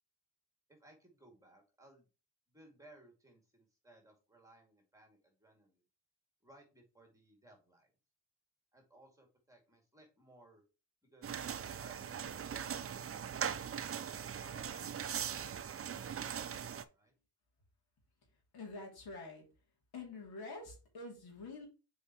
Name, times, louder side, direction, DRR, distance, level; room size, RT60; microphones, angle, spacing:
voice 1, 0.7-2.1 2.5-5.8 6.4-7.9 8.7-10.6 11.0-11.4, right 1 dB, 10° right, 2 dB, 2.3 m, -63 dB
sound 1, 11.2-16.8, right 8 dB, 35° right, 0.5 m, -40 dB
voice 2, 18.5-19.4 19.9-21.7, left 3 dB, 75° left, -1 dB, 2.8 m, -47 dB
7.0 x 4.7 x 3.0 m, 0.31 s
cardioid pair, 105°, 38 cm